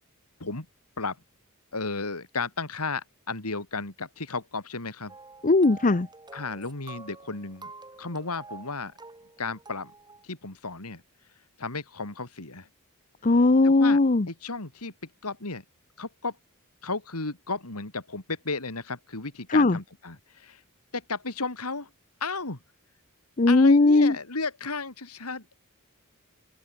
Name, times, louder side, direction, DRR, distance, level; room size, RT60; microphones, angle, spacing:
voice 1, 1.7-5.2 6.3-7.7 8.0-8.9 9.4-9.9 10.2-11.0 11.6-12.7 13.6-14.0 14.3-14.9 15.2-15.6 16.0-16.4 16.8-20.6 20.9-21.9 22.2-22.6 23.5-25.6, left 3 dB, 90° left, 3.3 m, -34 dB
sound 1, 5.1-10.2, right 3 dB, 20° right, 5.5 m, -48 dB
voice 2, 5.4-6.1 13.2-14.3 19.5-19.8 23.4-24.2, left 2 dB, 35° left, 0.8 m, -19 dB
head